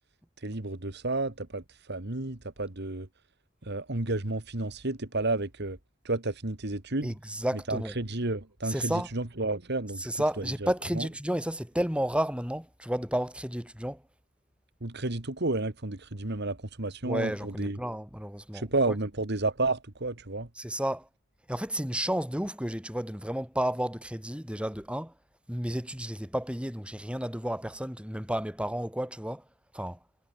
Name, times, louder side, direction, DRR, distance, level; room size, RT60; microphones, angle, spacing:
voice 1, 0.4-3.1 3.6-5.8 6.0-7.1 7.7-10.0 10.9-11.1 14.8-17.8 18.5-20.5, right 2 dB, 60° right, 2.1 m, -31 dB
voice 2, 7.0-7.9 8.6-9.1 10.0-14.0 17.0-18.9 20.6-21.1 21.5-25.1 25.5-29.5 29.7-30.0, right 1 dB, 5° right, 4.6 m, -32 dB
head